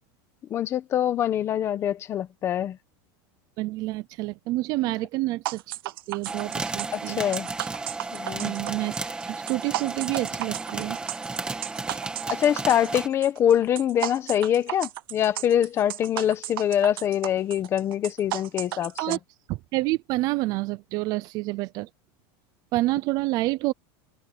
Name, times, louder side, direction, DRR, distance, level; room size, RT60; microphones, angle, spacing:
voice 1, 0.5-2.8 6.9-7.5 8.1-8.6 12.3-19.2, left 10 dB, 20° left, 1.3 m, -24 dB
voice 2, 3.6-5.6 6.1-7.2 8.4-9.0 9.2-11.0 19.0-19.2 19.5-21.9 22.7-23.7, right 19 dB, 35° right, 0.6 m, -28 dB
sound 1, 5.5-19.2, right 16 dB, 80° right, 0.9 m, -34 dB
sound 2, 6.3-13.1, right 3 dB, 10° right, 1.9 m, -33 dB
supercardioid pair, 175°, 12 cm